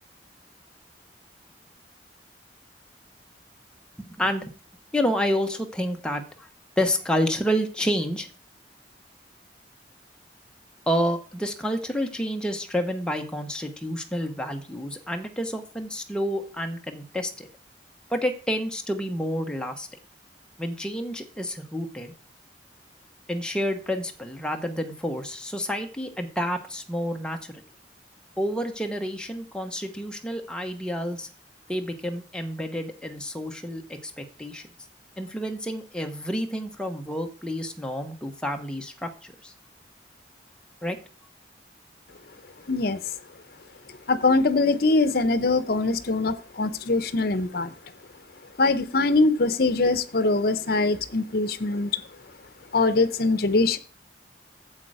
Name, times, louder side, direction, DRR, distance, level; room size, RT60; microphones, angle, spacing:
voice 1, 4.0-4.5 4.9-6.5 6.8-8.3 10.9-17.5 18.1-19.9 20.6-22.1 23.3-27.5 28.4-31.3 31.7-34.6 35.2-39.5 40.8-41.0, equal, 5° left, 4 dB, 1.0 m, -29 dB
voice 2, 42.7-43.0 44.1-47.7 48.6-52.0 52.7-53.8, left 3 dB, 60° left, 13 dB, 0.8 m, -22 dB
8.4 x 7.7 x 4.9 m, 0.37 s
head